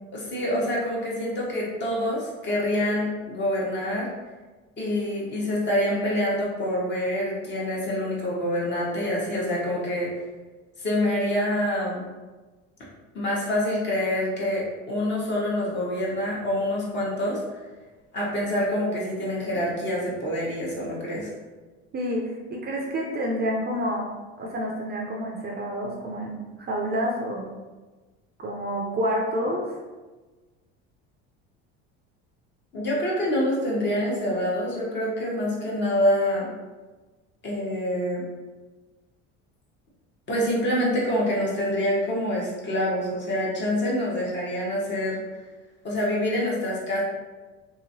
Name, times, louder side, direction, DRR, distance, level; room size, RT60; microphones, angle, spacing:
voice 1, 0.1-4.1 4.8-10.1 10.8-12.0 13.1-17.4 18.1-21.3 32.7-36.5 37.4-38.2 40.3-45.2 45.8-47.0, left 1 dB, 35° left, -4 dB, 1.1 m, -26 dB
voice 2, 21.9-24.1 24.4-27.5 28.4-29.6, equal, 30° right, -1 dB, 0.5 m, -28 dB
2.9 x 2.7 x 2.6 m, 1.3 s
supercardioid pair, 100°, 32 cm